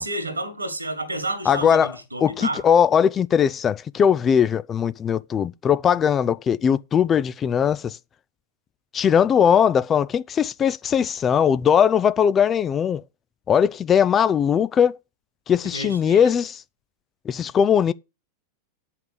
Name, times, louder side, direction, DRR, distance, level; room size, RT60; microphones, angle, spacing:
voice 1, 0.0-2.6 15.7-16.3, right 2 dB, 80° right, 2.0 m, -30 dB
voice 2, 1.5-8.0 8.9-13.0 13.5-15.0 15.5-16.6 17.3-17.9, left 8 dB, 25° left, 0.4 m, -20 dB
9.1 x 5.7 x 6.7 m
figure-of-eight pair, 90°, 0 cm